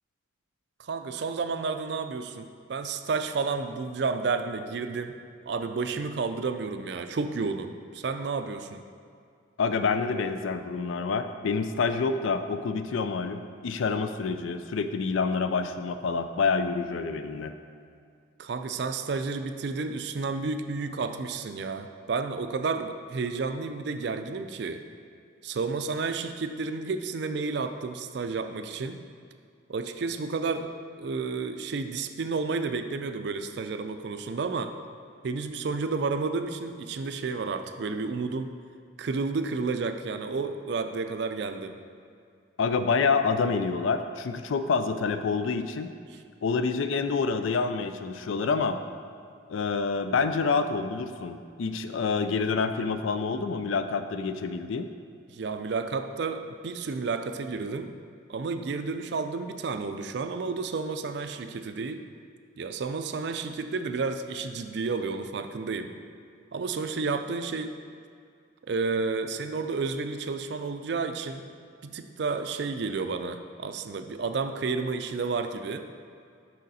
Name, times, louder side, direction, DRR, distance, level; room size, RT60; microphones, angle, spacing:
voice 1, 0.8-5.2 5.4-8.8 18.4-24.8 25.4-29.0 29.7-34.7 35.2-38.5 39.0-41.8 46.1-46.2 55.3-57.9 58.3-62.0 62.6-65.9 66.5-67.8 68.7-71.5 71.8-75.9, right 4 dB, 55° right, 8 dB, 0.4 m, -31 dB
voice 2, 9.6-17.5 42.6-45.9 46.4-48.8 49.5-54.9, left 4 dB, 80° left, 9 dB, 0.4 m, -27 dB
6.5 x 5.6 x 4.1 m, 2.3 s
head